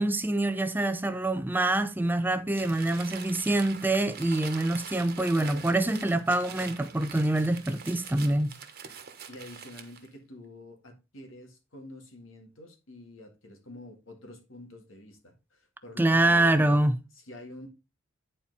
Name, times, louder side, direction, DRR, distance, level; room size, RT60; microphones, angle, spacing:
voice 1, 0.0-8.5 16.0-17.0, right 2 dB, 10° right, 0.5 m, -25 dB
Crumpling crinkling, 2.5-10.1, right 7 dB, 50° right, 1.3 m, -44 dB
voice 2, 5.4-5.7 9.3-16.8 17.1-17.7, left 1 dB, 75° left, 2.2 m, -47 dB
10.5 x 4.4 x 4.1 m
head